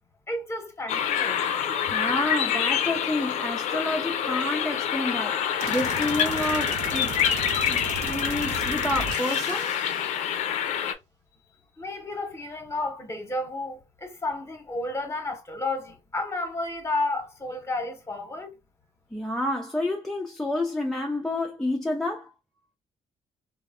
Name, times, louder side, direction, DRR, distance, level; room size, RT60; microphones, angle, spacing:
voice 1, 0.3-1.4 11.8-18.5, left 2 dB, 25° left, 0.9 m, -32 dB
sound 1, 0.9-10.9, left 9 dB, 80° left, 0.4 m, -27 dB
voice 2, 1.8-7.2 7.7-9.8 19.1-22.3, left 1 dB, 5° left, 0.4 m, -29 dB
sound 2, 5.6-10.0, right 5 dB, 85° right, 0.5 m, -36 dB
3.1 x 2.0 x 2.3 m
cardioid pair, 110°, 12 cm